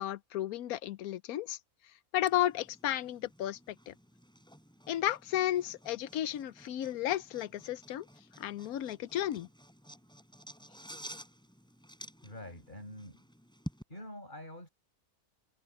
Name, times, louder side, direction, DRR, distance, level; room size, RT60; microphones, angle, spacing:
voice 1, 0.0-1.6 2.1-3.9 4.9-8.1 8.4-9.5, left 13 dB, 80° left, 1.1 m, -33 dB
sound 1, 2.2-13.8, equal, 5° left, 7.5 m, -51 dB
voice 2, 12.2-13.2 13.9-14.7, left 1 dB, 30° left, 7.7 m, -46 dB
omnidirectional pair, 1.6 m